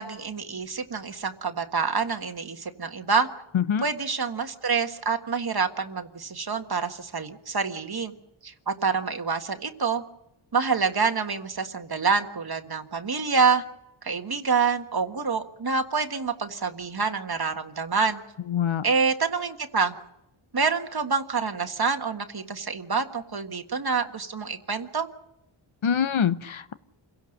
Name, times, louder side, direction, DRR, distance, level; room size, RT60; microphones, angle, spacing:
voice 1, 0.0-3.3 3.8-8.1 8.4-10.0 10.5-13.6 14.0-18.2 18.8-19.9 20.5-25.1, right 5 dB, 45° right, 7 dB, 1.7 m, -27 dB
voice 2, 3.5-3.9 18.5-18.8 25.8-26.7, left 8 dB, 70° left, 12 dB, 1.0 m, -24 dB
27.5 x 17.0 x 6.6 m, 0.83 s
wide cardioid pair, 90°, 50 cm